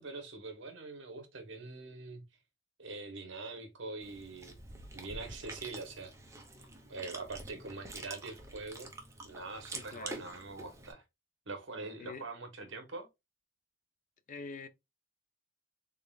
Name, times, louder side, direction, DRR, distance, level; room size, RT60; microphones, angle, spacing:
voice 1, 0.0-2.2 2.8-4.5 4.9-6.1 6.9-8.9 9.2-11.0 11.5-13.1, right 3 dB, 65° right, 1.0 m, -43 dB
Chewing mastication, 4.0-10.9, right 2 dB, 15° right, 0.7 m, -47 dB
voice 2, 9.7-10.2 12.0-12.3 14.3-14.7, left 4 dB, 40° left, 0.5 m, -45 dB
3.7 x 3.6 x 2.3 m
head